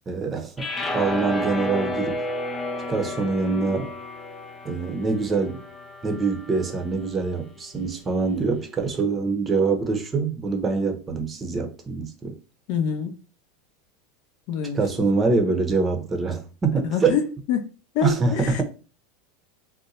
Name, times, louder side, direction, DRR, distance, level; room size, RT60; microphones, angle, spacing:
voice 1, 0.1-0.7 0.9-2.2 2.9-3.9 4.6-5.6 6.0-12.4 14.7-17.2 18.0-18.6, right 4 dB, 20° right, 0.7 m, -24 dB
sound 1, 0.6-6.8, left 1 dB, 15° left, 0.6 m, -31 dB
voice 2, 12.7-13.2 14.5-15.1 16.8-17.2 17.5-18.6, left 7 dB, 60° left, 0.6 m, -26 dB
2.6 x 2.2 x 4.0 m
supercardioid pair, 125°, 0 cm